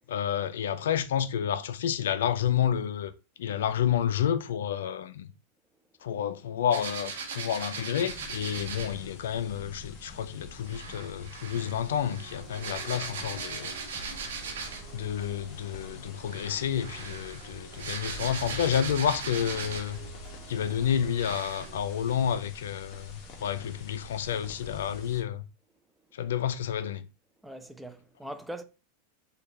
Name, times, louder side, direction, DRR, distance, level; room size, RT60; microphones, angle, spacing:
voice 1, 0.1-3.1 3.4-5.3 6.0-13.7 14.9-20.0 20.5-23.1 23.4-25.4 26.1-27.0, left 9 dB, 80° left, 0.3 m, -30 dB
sound 1, 6.7-9.0 10.7-15.0 16.2-20.0 20.6-20.7 21.1-21.7, right 5 dB, 80° right, 1.0 m, -39 dB
sound 2, 8.1-25.2, left 3 dB, 45° left, 0.9 m, -47 dB
sound 3, 11.9-21.8, right 7 dB, 50° right, 1.0 m, -49 dB
voice 2, 27.4-28.6, right 1 dB, 5° right, 0.4 m, -41 dB
3.2 x 2.3 x 4.1 m
hypercardioid pair, 115°, 0 cm